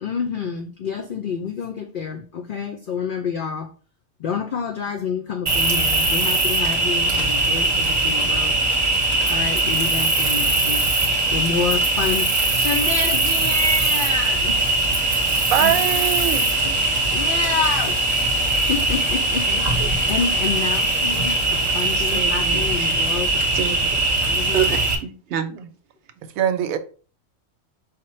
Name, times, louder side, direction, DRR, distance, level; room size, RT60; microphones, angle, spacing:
voice 1, 0.0-3.7 4.2-8.6 9.3-10.8 11.3-14.6 15.6-16.0 16.6-16.7 17.1-18.0 18.6-23.4 24.2-24.7, left 5 dB, 80° left, 0.4 m, -28 dB
Cricket, 5.5-25.0, right 2 dB, 35° right, 0.8 m, -21 dB
voice 2, 15.4-16.5 26.4-26.8, right 10 dB, 90° right, 1.0 m, -21 dB
voice 3, 19.5-19.9 21.7-23.0 23.5-24.0 24.5-25.7, right 7 dB, 65° right, 0.8 m, -29 dB
5.0 x 2.1 x 4.2 m
omnidirectional pair, 1.4 m